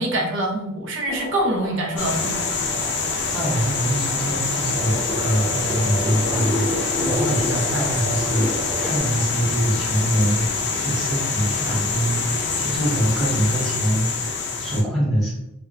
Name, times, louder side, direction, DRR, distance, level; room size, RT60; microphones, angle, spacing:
voice 1, 0.0-2.4, right 1 dB, 60° right, 0 dB, 0.6 m, -24 dB
sound 1, 1.1-9.0, equal, 35° left, 0.9 m, -31 dB
sound 2, 2.0-14.8, left 4 dB, 55° left, 0.4 m, -25 dB
voice 2, 3.3-15.3, right 1 dB, ahead, -8 dB, 0.9 m, -24 dB
2.1 x 2.0 x 3.6 m, 0.85 s
head